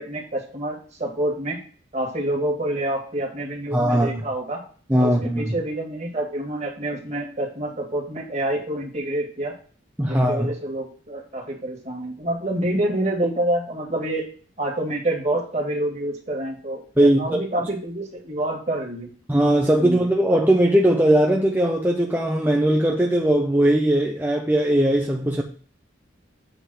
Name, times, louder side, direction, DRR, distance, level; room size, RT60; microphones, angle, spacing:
voice 1, 0.0-1.6 1.9-4.6 5.0-9.5 10.0-14.3 14.6-19.1 19.8-20.0, right 1 dB, 35° right, 2.4 m, -27 dB
voice 2, 3.7-4.1 4.9-5.5 10.0-10.5 17.0-17.2 19.3-25.4, right 1 dB, 10° right, 0.8 m, -19 dB
8.0 x 4.0 x 6.5 m
head